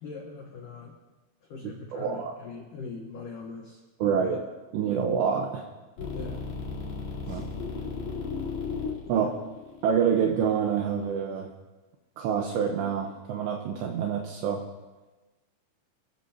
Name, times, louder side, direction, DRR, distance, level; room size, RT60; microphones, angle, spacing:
voice 1, 0.0-1.0 1.5-4.4 6.1-6.5 7.3-7.5 9.2-9.4, left 4 dB, 85° left, 1 dB, 1.8 m, -41 dB
voice 2, 1.9-2.4 4.0-4.4 4.7-5.6 7.3-7.5 9.1-9.3 9.8-11.5 12.2-14.6, right 7 dB, 75° right, 2 dB, 2.8 m, -27 dB
sound 1, 6.0-11.1, left 5 dB, 50° left, 4.8 m, -35 dB
27.5 x 13.5 x 2.8 m, 1.2 s
omnidirectional pair, 5.8 m